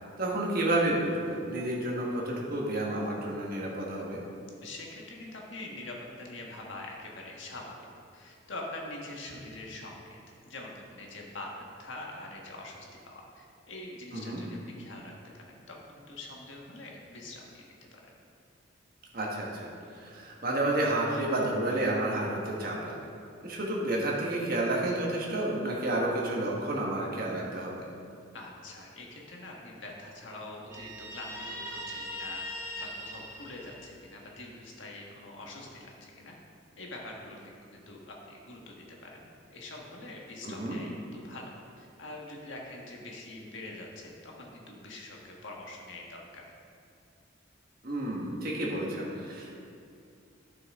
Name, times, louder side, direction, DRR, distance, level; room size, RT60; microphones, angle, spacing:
voice 1, 0.2-4.2 14.1-14.4 19.1-23.0 23.4-27.7 40.4-40.8 47.8-49.5, right 1 dB, 50° right, -3 dB, 1.5 m, -30 dB
voice 2, 4.6-7.7 8.1-10.2 10.4-11.5 11.8-17.6 17.9-18.1 28.3-36.3 36.8-37.4 37.7-38.7 39.0-46.4, left 2 dB, 70° left, -1 dB, 1.5 m, -44 dB
Guitar, 30.7-34.3, left 1 dB, 15° right, 1.5 m, -40 dB
11.5 x 6.1 x 3.7 m, 2.4 s
head